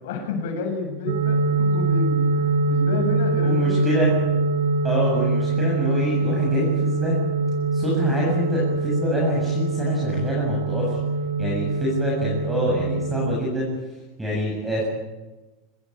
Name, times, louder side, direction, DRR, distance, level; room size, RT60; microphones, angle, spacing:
voice 1, 0.0-4.0, left 4 dB, 75° left, 2 dB, 7.8 m, -30 dB
sound 1, 1.1-13.4, right 3 dB, 75° right, 5.7 m, -23 dB
voice 2, 3.4-4.1 4.8-7.2 7.7-11.0 11.4-13.7 14.2-14.8, equal, 5° right, -4 dB, 7.8 m, -26 dB
25.0 x 21.0 x 8.9 m, 1.1 s
supercardioid pair, 165°, 0 cm